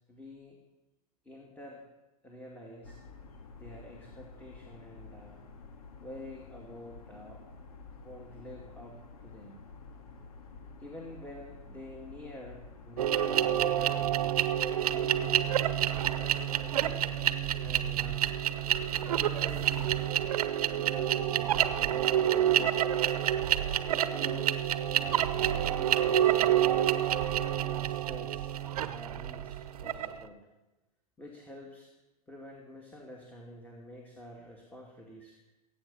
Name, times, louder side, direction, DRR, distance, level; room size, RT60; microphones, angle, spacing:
voice 1, 0.1-0.6 1.2-1.8 2.2-3.0 3.6-5.4 6.0-7.4 8.0-9.6 10.8-14.2 14.9-15.4 16.0-17.1 17.6-18.4 19.0-20.0 20.7-22.6 23.9-24.7 25.0-27.1 27.7-30.4 31.2-31.9 32.3-35.4, left 1 dB, 10° left, -1 dB, 2.7 m, -48 dB
sound 1, 2.8-20.0, left 4 dB, 70° left, 2.1 m, -50 dB
sound 2, 13.0-30.2, right 11 dB, 70° right, 1.0 m, -28 dB
22.0 x 8.8 x 5.7 m, 1.1 s
hypercardioid pair, 105°, 20 cm